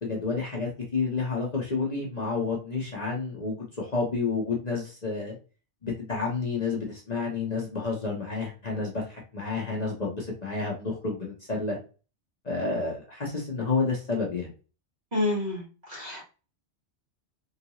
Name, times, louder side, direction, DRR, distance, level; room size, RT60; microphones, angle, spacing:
voice 1, 0.0-5.3 5.8-11.8 12.4-14.5, left 4 dB, 40° left, -2 dB, 0.9 m, -30 dB
voice 2, 15.1-16.3, left 2 dB, 40° right, -4 dB, 1.5 m, -29 dB
3.9 x 2.5 x 2.9 m, 0.34 s
omnidirectional pair, 1.2 m